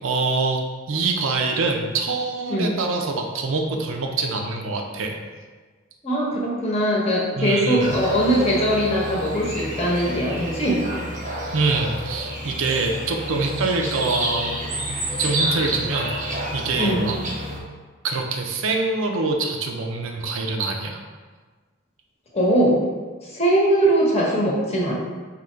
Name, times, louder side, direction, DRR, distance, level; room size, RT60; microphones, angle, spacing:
voice 1, 0.0-0.6 0.9-5.2 7.4-7.9 11.5-14.6 14.9-17.2 18.0-21.0, right 3 dB, 85° right, 2 dB, 0.6 m, -25 dB
voice 2, 6.0-10.9 16.8-17.1 22.3-22.8 23.3-24.9, right 1 dB, 30° left, -3 dB, 0.9 m, -21 dB
sound 1, 7.8-17.6, right 1 dB, 35° right, 0.7 m, -29 dB
3.8 x 2.9 x 4.4 m, 1.4 s
head